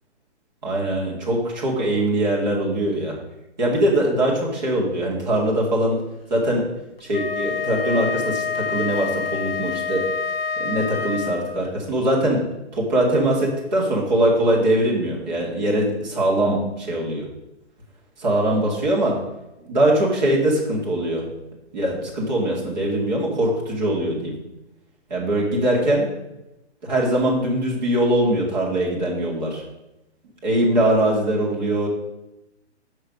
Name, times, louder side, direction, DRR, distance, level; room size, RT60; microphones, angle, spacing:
voice 1, 0.6-3.1 3.6-6.0 6.3-6.7 7.0-10.0 10.6-12.5 12.7-17.3 18.2-19.2 19.7-21.2 21.7-24.3 25.1-26.1 26.8-29.6 30.4-31.9, right 1 dB, 40° right, -3 dB, 2.3 m, -22 dB
Wind instrument woodwind instrument, 7.0-11.7, left 5 dB, 55° left, 0.7 m, -27 dB
6.6 x 6.1 x 5.4 m, 0.95 s
hypercardioid pair, 180°, 35 cm